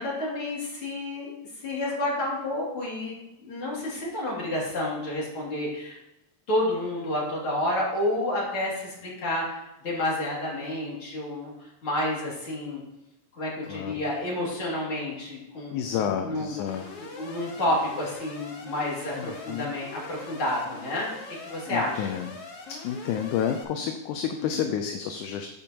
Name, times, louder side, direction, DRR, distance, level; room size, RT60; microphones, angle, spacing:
voice 1, 0.0-3.1 3.4-6.0 6.5-12.8 13.3-16.5 17.0-22.2 24.3-24.6, left 1 dB, 45° left, -5 dB, 3.2 m, -30 dB
voice 2, 15.7-16.9 19.1-19.7 21.7-22.3 22.8-25.5, left 8 dB, 80° left, 5 dB, 1.9 m, -30 dB
Alarm, 16.7-23.6, left 3 dB, 60° left, 1.8 m, -42 dB
13.5 x 5.3 x 2.9 m, 0.93 s
omnidirectional pair, 3.7 m